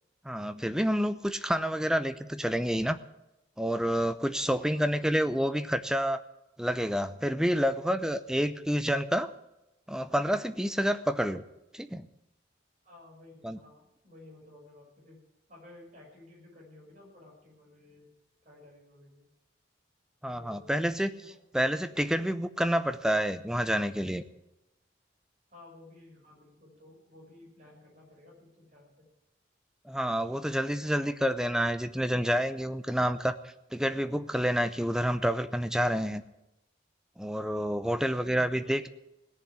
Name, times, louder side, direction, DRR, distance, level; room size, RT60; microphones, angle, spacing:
voice 1, 0.2-3.0 3.6-6.2 6.6-9.3 9.9-11.4 11.7-12.1 13.4-13.6 20.2-21.1 21.5-24.2 29.9-33.4 33.7-36.2 37.2-38.9, equal, 5° right, 11 dB, 0.6 m, -28 dB
voice 2, 4.3-5.1 7.5-7.7 12.8-15.2 15.5-18.1 18.4-19.2 20.3-20.9 21.2-21.4 25.5-29.1 37.8-38.8, left 2 dB, 40° right, -2 dB, 6.6 m, -54 dB
17.5 x 7.2 x 9.7 m, 0.90 s
head